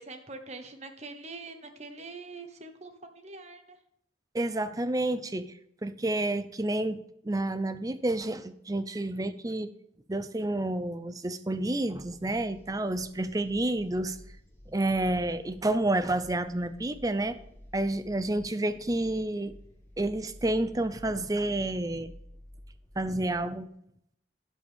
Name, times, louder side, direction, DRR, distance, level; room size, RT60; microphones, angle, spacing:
voice 1, 0.0-3.8, right 3 dB, 35° right, 6 dB, 1.2 m, -44 dB
voice 2, 4.3-5.5 5.8-9.7 10.1-14.2 14.7-17.4 17.7-19.5 20.0-22.1 23.0-23.7, right 1 dB, 20° right, 12 dB, 0.6 m, -29 dB
sound 1, 11.9-23.5, left 1 dB, 15° left, 1.9 m, -52 dB
11.5 x 7.7 x 3.6 m, 0.73 s
head